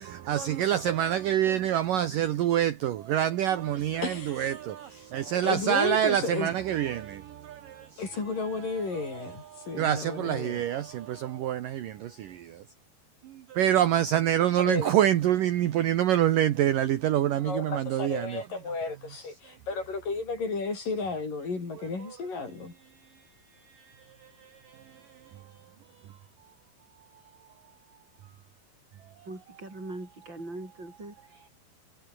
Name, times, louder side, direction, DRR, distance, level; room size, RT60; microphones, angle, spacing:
voice 1, 0.3-4.1 4.4-7.2 9.8-11.9 12.2-12.3 13.6-18.2, right 11 dB, 70° right, 2.2 m, -25 dB
voice 2, 4.0-5.1 5.4-6.5 8.0-10.6 14.6-15.0 17.4-22.7, left 4 dB, 45° left, 7.3 m, -33 dB
voice 3, 29.2-31.5, right 2 dB, 25° right, 6.9 m, -41 dB
omnidirectional pair, 5.4 m